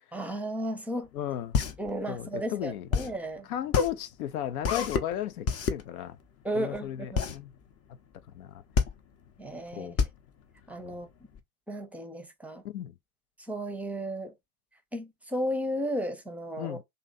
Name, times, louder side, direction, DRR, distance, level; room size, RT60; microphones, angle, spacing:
voice 1, 0.1-1.1 1.8-3.5 6.4-7.3 9.4-9.9 10.7-11.1 11.7-12.6 13.5-14.3 14.9-16.8, equal, 5° right, 0.7 m, -34 dB
voice 2, 1.1-1.6 2.1-2.9 3.5-6.2 6.5-7.5 8.3-8.6 9.7-10.0 10.8-11.0 12.6-12.9 16.6-16.8, left 11 dB, 70° left, 0.7 m, -35 dB
sound 1, 1.1-11.4, left 6 dB, 35° left, 0.8 m, -30 dB
3.1 x 2.6 x 3.9 m
hypercardioid pair, 90°, 45 cm